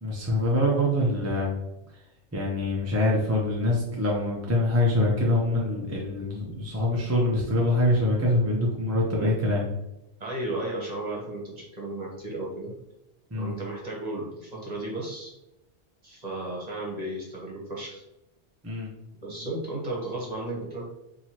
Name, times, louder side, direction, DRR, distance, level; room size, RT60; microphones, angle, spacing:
voice 1, 0.0-1.5 2.3-9.6 13.3-13.5 18.6-18.9, left 1 dB, 20° right, -3 dB, 0.5 m, -24 dB
voice 2, 10.2-12.7 13.3-15.3 16.0-18.0 19.2-20.9, right 2 dB, 35° right, -4 dB, 1.2 m, -34 dB
4.6 x 2.8 x 2.9 m, 0.92 s
omnidirectional pair, 1.2 m